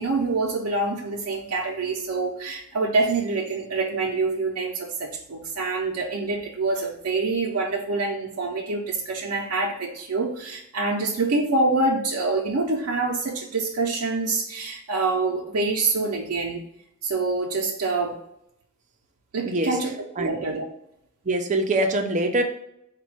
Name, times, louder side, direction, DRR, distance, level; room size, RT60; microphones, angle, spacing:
voice 1, 0.0-16.6 17.0-18.3 19.3-20.6, right 3 dB, 90° right, -1 dB, 0.6 m, -26 dB
voice 2, 19.4-19.7 20.2-20.4 21.3-22.4, right 1 dB, 35° right, 4 dB, 0.5 m, -23 dB
4.0 x 2.2 x 4.6 m, 0.76 s
head